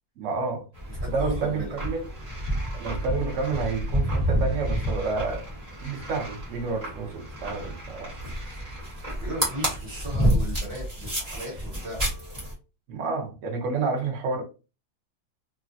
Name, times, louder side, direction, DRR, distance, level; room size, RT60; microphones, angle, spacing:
voice 1, 0.2-0.6 1.1-2.1 2.7-5.4 5.8-8.1 12.9-14.4, right 4 dB, 85° right, 0.6 m, -29 dB
sound 1, 0.7-12.5, equal, 25° right, 1.0 m, -29 dB
voice 2, 0.9-1.7 9.2-12.0, right 1 dB, 40° right, 1.2 m, -37 dB
3.2 x 2.2 x 2.5 m
omnidirectional pair, 2.2 m